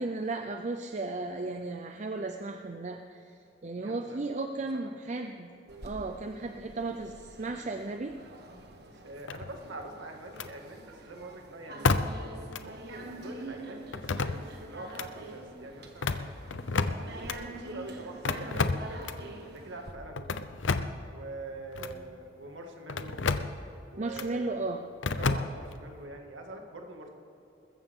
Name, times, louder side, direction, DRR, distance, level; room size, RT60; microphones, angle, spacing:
voice 1, 0.0-3.2 3.6-5.5 5.8-8.1 24.0-24.8, right 3 dB, 40° right, 6 dB, 0.6 m, -35 dB
voice 2, 3.8-4.2 4.6-4.9 9.0-11.9 12.6-16.3 16.8-19.1 19.4-20.3 21.1-23.2 23.9-24.6 25.2-27.1, right 2 dB, 85° right, 2 dB, 2.2 m, -44 dB
sound 1, 5.7-19.9, right 2 dB, 60° right, 1.6 m, -46 dB
sound 2, 9.3-9.8 10.3-10.5 11.8-12.3 12.5-12.6 13.9-14.6 14.9-15.1 15.9-17.4 18.2-19.3 20.2-21.0 21.7-22.0 22.9-23.6 24.1-24.3 25.0-25.8, left 4 dB, 85° left, 0.7 m, -30 dB
21.0 x 14.5 x 3.7 m, 2.8 s
head